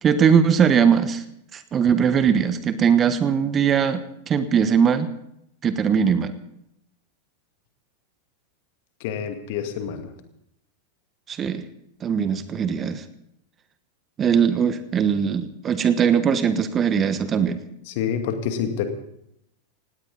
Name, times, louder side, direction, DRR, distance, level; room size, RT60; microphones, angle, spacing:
voice 1, 0.0-1.2 1.5-5.1 5.6-6.3 11.3-11.7 12.0-13.0 14.2-17.6, right 7 dB, 25° right, 12 dB, 1.2 m, -20 dB
voice 2, 9.0-10.1 17.9-18.9, left 8 dB, 50° left, 7 dB, 2.2 m, -27 dB
18.5 x 17.5 x 4.0 m, 0.76 s
figure-of-eight pair, 90°, 0 cm